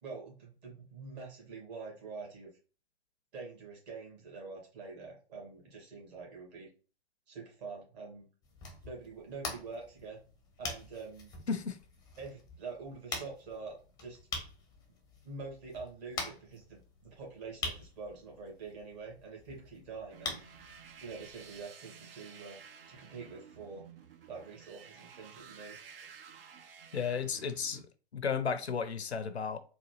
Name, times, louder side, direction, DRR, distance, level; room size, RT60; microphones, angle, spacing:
voice 1, 0.0-2.5 3.3-6.7 7.3-8.3 8.8-10.2 10.6-11.3 12.2-14.2 15.2-20.4 21.0-22.6 22.9-23.8 24.3-25.8, right 4 dB, 40° right, 1.8 m, -45 dB
sound 1, 8.4-21.7, left 3 dB, 10° left, 0.5 m, -45 dB
voice 2, 11.5-11.8 26.9-29.6, left 6 dB, 85° left, 0.5 m, -34 dB
sound 2, 20.1-27.8, right 7 dB, 60° right, 0.6 m, -53 dB
4.0 x 2.3 x 3.0 m
figure-of-eight pair, 110°, 32 cm